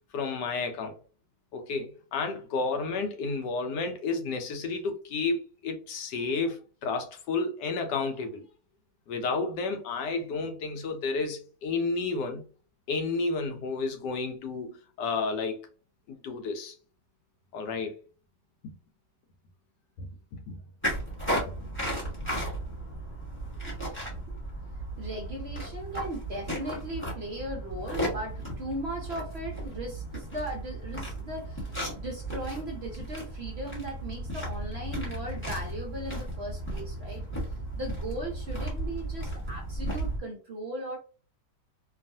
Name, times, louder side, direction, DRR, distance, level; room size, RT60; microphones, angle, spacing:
voice 1, 0.1-1.0 1.5-8.4 9.1-12.4 12.9-15.6 16.1-16.7 17.5-18.0 18.6-18.7 20.0-20.6 21.3-21.6, left 4 dB, 80° left, 1.2 m, -31 dB
sound 1, 20.8-40.2, right 1 dB, 10° left, 1.0 m, -35 dB
voice 2, 25.0-41.0, right 1 dB, 75° right, 0.5 m, -38 dB
3.0 x 2.3 x 2.6 m
omnidirectional pair, 1.8 m